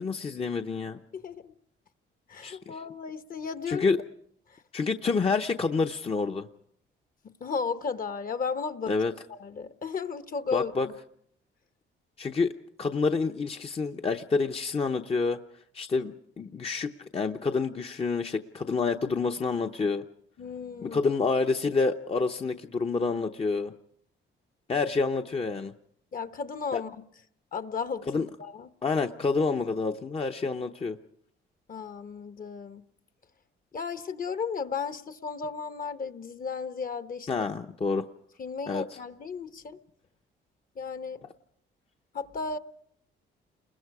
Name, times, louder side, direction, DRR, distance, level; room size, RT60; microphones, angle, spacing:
voice 1, 0.0-1.0 2.4-2.8 3.7-4.0 4.7-6.5 8.9-9.1 10.5-10.9 12.2-12.5 12.8-15.4 15.7-20.0 20.8-23.7 24.7-25.7 26.7-26.8 28.1-28.3 28.8-31.0 37.3-38.0 38.7-38.8, left 4 dB, 30° left, 5 dB, 0.8 m, -28 dB
voice 2, 1.1-1.5 2.3-3.9 4.5-4.6 7.4-8.9 9.3-10.9 20.4-21.0 26.1-27.0 27.5-28.7 31.7-32.8 33.7-37.3 38.4-39.8 40.7-41.2 42.1-42.6, left 5 dB, 45° left, 11 dB, 1.1 m, -34 dB
29.5 x 21.5 x 4.8 m, 0.70 s
cardioid pair, 90°, 20 cm